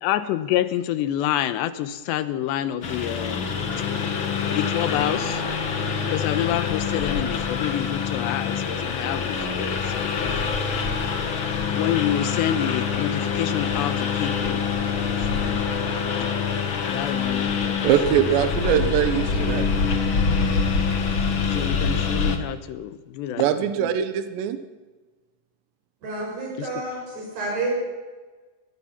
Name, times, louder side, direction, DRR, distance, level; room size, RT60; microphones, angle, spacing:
voice 1, 0.0-3.5 4.5-5.4 6.1-10.1 11.7-14.6 15.3-15.7 16.9-18.3 21.5-24.0 26.6-26.8, left 12 dB, 90° left, 13 dB, 3.2 m, -28 dB
Engine, 2.8-22.4, left 6 dB, 55° left, 1.4 m, -25 dB
voice 2, 17.8-20.0 23.4-24.6, right 10 dB, 85° right, 10 dB, 3.4 m, -22 dB
voice 3, 26.0-27.7, right 2 dB, 70° right, -3 dB, 8.7 m, -29 dB
23.5 x 19.0 x 5.8 m, 1.3 s
omnidirectional pair, 4.9 m